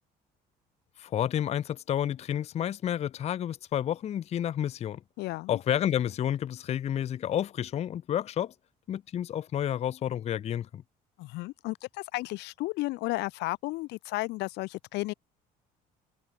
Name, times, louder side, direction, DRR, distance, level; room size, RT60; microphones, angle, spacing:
voice 1, 1.0-5.0 5.5-8.5 8.9-10.8, left 10 dB, 40° left, 0.4 m, -30 dB
voice 2, 5.2-5.6 11.2-15.1, left 20 dB, 85° left, 0.7 m, -33 dB
cardioid pair, 110°, 17 cm